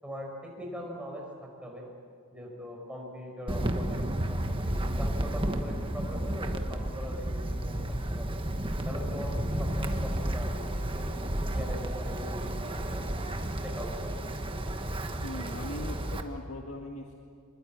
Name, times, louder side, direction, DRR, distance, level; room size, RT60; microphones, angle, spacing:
voice 1, 0.0-1.9 2.3-4.0 4.3-8.4 8.8-11.3 11.5-12.6 12.8-13.1 13.6-14.2, equal, 5° right, -1 dB, 5.3 m, -41 dB
Wind, 3.5-16.2, right 1 dB, 25° right, 1.4 m, -32 dB
voice 2, 15.2-17.2, left 1 dB, 80° left, 1 dB, 2.0 m, -40 dB
25.5 x 21.5 x 8.8 m, 2.3 s
head